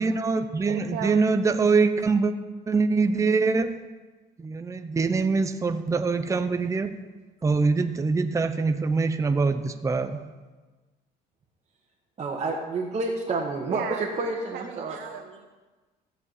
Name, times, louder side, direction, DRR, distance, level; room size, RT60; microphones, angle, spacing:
voice 1, 0.0-2.3 2.7-3.8 4.4-6.9 7.4-10.3, right 4 dB, 20° right, 9 dB, 0.7 m, -24 dB
voice 2, 0.6-1.3 13.6-15.5, right 9 dB, 85° right, 5 dB, 0.8 m, -36 dB
voice 3, 12.2-15.0, right 3 dB, 40° right, -3 dB, 1.6 m, -29 dB
15.0 x 5.0 x 8.2 m, 1.3 s
cardioid pair, 110°, 17 cm